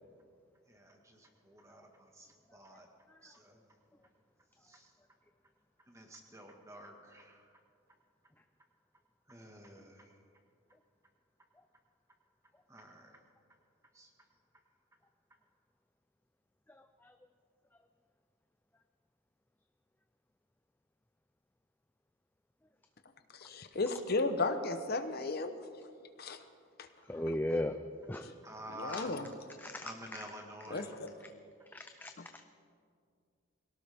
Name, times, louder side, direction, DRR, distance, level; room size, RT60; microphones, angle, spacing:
voice 1, 0.7-2.9 3.2-3.6 4.7-4.9 5.9-7.4 9.3-10.1 12.7-13.1 13.9-14.1 28.4-29.1 29.8-30.9, right 1 dB, 15° right, 2 dB, 1.7 m, -50 dB
voice 2, 16.7-17.2 27.0-27.8 28.1-28.3 28.9-29.1 29.6-30.3 31.7-32.4, left 1 dB, 10° left, 7 dB, 0.4 m, -38 dB
voice 3, 23.3-25.5 26.2-26.4 26.8-26.9 28.7-29.3 30.7-31.1, left 3 dB, 50° left, 8 dB, 0.9 m, -34 dB
22.0 x 17.5 x 3.6 m, 2.2 s
head